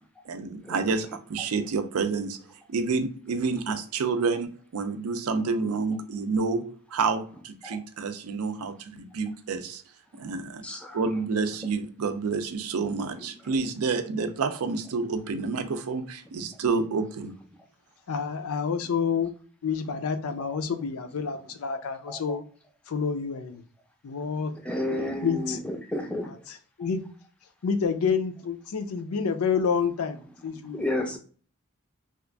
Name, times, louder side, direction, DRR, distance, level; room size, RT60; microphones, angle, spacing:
voice 1, 0.3-2.4 2.7-9.8 10.2-10.6 10.9-17.3, right 4 dB, 90° right, 0.5 m, -29 dB
voice 2, 10.6-11.0 21.7-21.8 22.1-22.4 24.6-26.3 30.5-31.2, left 1 dB, 5° left, 0.4 m, -32 dB
voice 3, 18.1-19.3 19.6-22.4 22.9-23.6 24.0-24.5 25.2-25.6 26.3-27.0 27.6-30.9, left 6 dB, 85° left, 0.5 m, -28 dB
2.9 x 2.4 x 3.3 m
head